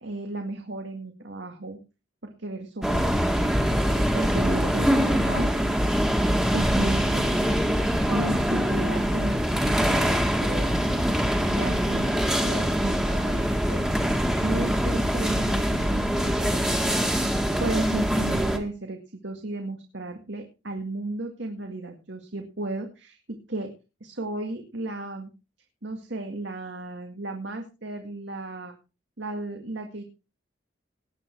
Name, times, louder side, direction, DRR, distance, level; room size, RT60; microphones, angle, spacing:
voice 1, 0.0-1.8 2.2-3.6 4.1-5.5 6.5-7.4 8.1-10.7 11.5-13.9 14.4-23.2 23.5-23.7 24.0-25.3 25.8-28.7 29.2-30.0, right 2 dB, 70° right, 4 dB, 2.1 m, -34 dB
sound 1, 2.8-18.6, equal, 5° right, 1.7 m, -24 dB
19.5 x 8.4 x 4.6 m, 0.31 s
head